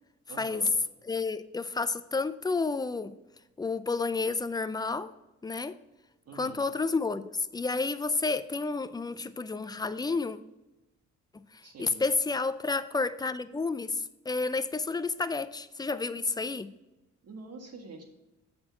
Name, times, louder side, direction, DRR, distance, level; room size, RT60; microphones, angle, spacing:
voice 1, 0.3-0.7 6.2-6.6 11.6-12.0 17.2-18.0, right 4 dB, 55° right, 3 dB, 1.7 m, -45 dB
voice 2, 1.0-3.1 3.6-5.1 5.4-5.8 6.3-10.4 11.8-16.7, left 4 dB, 15° left, 12 dB, 0.3 m, -30 dB
7.5 x 4.4 x 5.8 m, 1.0 s
cardioid pair, 90°, 30 cm